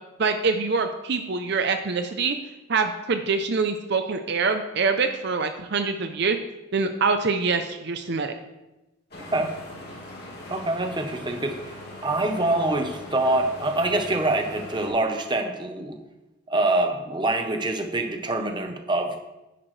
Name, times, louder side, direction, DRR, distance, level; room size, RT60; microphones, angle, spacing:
voice 1, 0.2-2.4 2.7-6.4 6.7-8.3, right 4 dB, 55° right, 7 dB, 0.5 m, -25 dB
sound 1, 9.1-14.9, left 1 dB, 50° left, 2.4 m, -41 dB
voice 2, 9.3-9.6 10.5-15.9 16.5-19.2, right 2 dB, 20° right, 5 dB, 0.9 m, -25 dB
11.0 x 10.0 x 3.2 m, 1.0 s
head